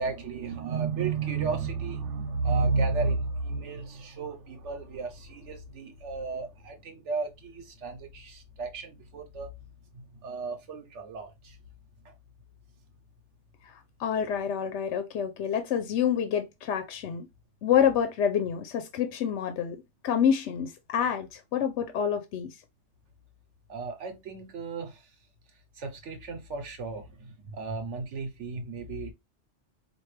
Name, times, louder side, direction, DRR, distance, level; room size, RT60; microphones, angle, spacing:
voice 1, 0.0-9.5 9.9-11.6 12.0-12.1 23.7-25.2 25.7-29.1, right 4 dB, 85° right, 1.3 m, -33 dB
voice 2, 14.0-17.3 17.6-19.8 20.0-22.5, left 8 dB, 80° left, 0.9 m, -27 dB
4.5 x 2.6 x 3.2 m
omnidirectional pair, 1.2 m